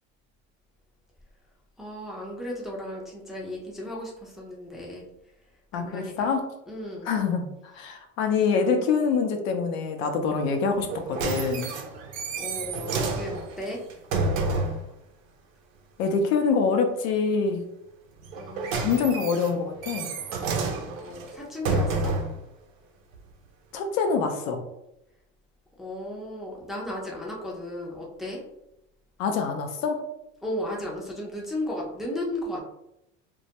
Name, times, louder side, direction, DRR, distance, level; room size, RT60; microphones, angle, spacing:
voice 1, 1.8-5.1 5.7-6.3 6.7-7.1 12.4-13.8 18.4-19.0 21.0-22.1 25.8-28.4 30.4-32.6, left 1 dB, ahead, -3 dB, 0.4 m, -35 dB
voice 2, 5.7-6.5 7.0-7.5 7.8-11.7 16.0-17.6 18.7-20.1 23.7-24.6 29.2-30.0, left 5 dB, 80° left, 5 dB, 0.6 m, -25 dB
sound 1, 10.8-14.9 18.2-22.4 23.1-23.2, right 3 dB, 90° right, 0.5 m, -29 dB
2.2 x 2.1 x 2.8 m, 0.84 s
supercardioid pair, 105°, 39 cm